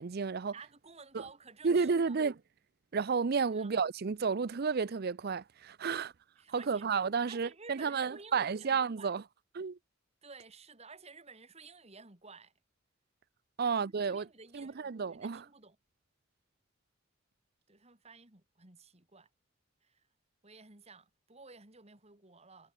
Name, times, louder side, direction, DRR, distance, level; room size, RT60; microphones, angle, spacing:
voice 1, 0.0-0.5 1.6-2.3 2.9-6.1 6.5-9.2 9.5-9.8 13.6-14.3 14.5-15.4, right 5 dB, 50° right, 0.5 m, -31 dB
voice 2, 0.5-2.2 3.5-3.7 5.9-6.1 6.4-6.9 7.3-9.1 10.2-12.5 13.6-15.8 17.7-19.3 19.8-20.1 20.4-22.7, right 4 dB, 30° right, 3.0 m, -54 dB
head